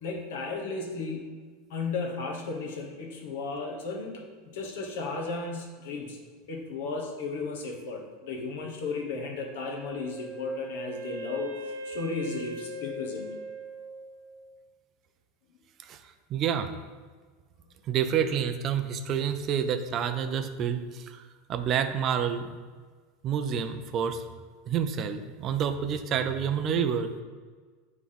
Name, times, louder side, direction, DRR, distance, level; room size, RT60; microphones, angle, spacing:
voice 1, 0.0-1.3 1.7-4.2 4.5-6.2 6.5-13.3, left 3 dB, 70° left, 1 dB, 1.2 m, -34 dB
Wind instrument woodwind instrument, 9.7-14.6, equal, 65° right, 0.9 m, -40 dB
voice 2, 16.3-16.7 17.9-22.6 23.2-24.2 24.7-27.2, right 8 dB, 25° right, 8 dB, 0.3 m, -28 dB
8.9 x 3.6 x 3.5 m, 1.5 s
supercardioid pair, 180°, 0 cm